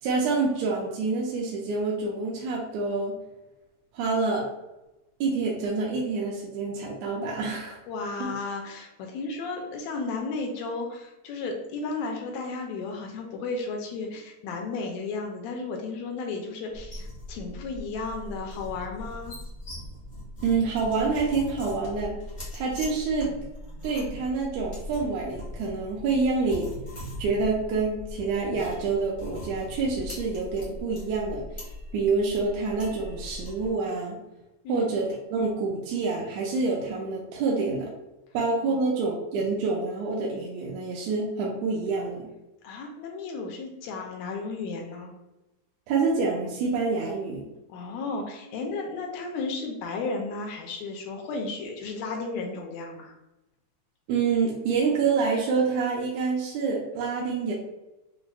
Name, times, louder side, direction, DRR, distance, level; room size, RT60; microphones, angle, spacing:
voice 1, 0.0-3.2 3.9-4.4 5.2-7.8 8.2-8.3 20.4-22.2 22.5-23.3 23.8-26.7 27.2-34.2 34.7-37.9 38.3-42.3 45.9-47.5 54.1-57.5, right 4 dB, 80° right, -3 dB, 1.7 m, -27 dB
voice 2, 7.9-19.4 34.6-34.9 38.7-38.8 42.6-45.1 47.7-53.1, left 3 dB, 80° left, 2 dB, 1.8 m, -34 dB
sound 1, 16.7-33.7, left 1 dB, 50° left, 0.5 m, -40 dB
5.8 x 2.1 x 2.3 m, 0.99 s
omnidirectional pair, 3.3 m